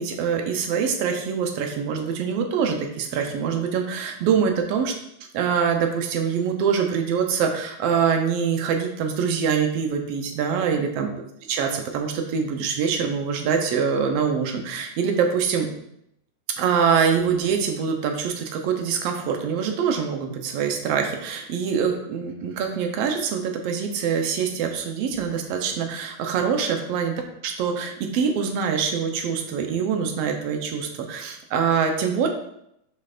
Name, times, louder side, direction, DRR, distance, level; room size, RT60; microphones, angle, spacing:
voice 1, 0.0-4.9 5.3-11.1 11.5-15.7 16.6-27.1 27.4-32.3, right 6 dB, 75° right, 4 dB, 1.5 m, -24 dB
7.3 x 5.4 x 2.5 m, 0.76 s
omnidirectional pair, 3.6 m